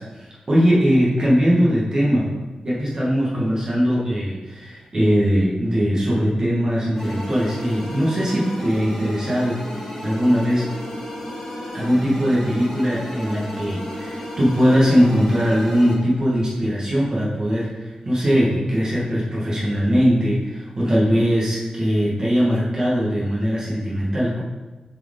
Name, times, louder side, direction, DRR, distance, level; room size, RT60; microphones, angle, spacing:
voice 1, 0.0-2.3 2.6-9.6 10.0-10.6 11.7-24.4, equal, 30° right, -6 dB, 1.4 m, -20 dB
sound 1, 7.0-16.0, left 1 dB, 10° left, 1.5 m, -32 dB
7.3 x 4.6 x 3.7 m, 1.2 s
wide cardioid pair, 155°, 2 cm